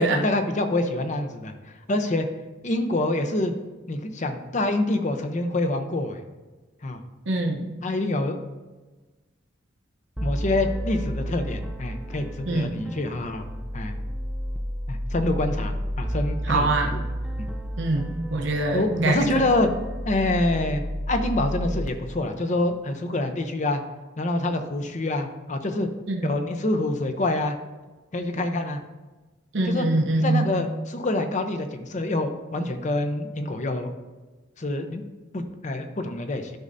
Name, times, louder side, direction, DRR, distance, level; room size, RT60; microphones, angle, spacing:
voice 1, 0.0-2.3 2.6-3.5 3.9-6.2 6.8-7.0 7.8-8.4 10.2-13.5 13.7-13.9 14.9-17.0 17.4-17.5 18.7-19.7 20.1-23.8 24.2-25.9 26.2-27.6 28.1-28.8 29.6-29.9 30.2-33.9 34.6-35.0 35.3-36.5, left 2 dB, 40° left, 7 dB, 0.7 m, -26 dB
voice 2, 7.3-7.7 12.4-12.8 16.4-17.0 17.8-19.4 26.1-26.4 29.5-30.5, right 2 dB, 70° right, 2 dB, 0.8 m, -24 dB
sound 1, 10.2-21.9, equal, 5° right, 0.3 m, -31 dB
11.5 x 5.4 x 2.6 m, 1.2 s
head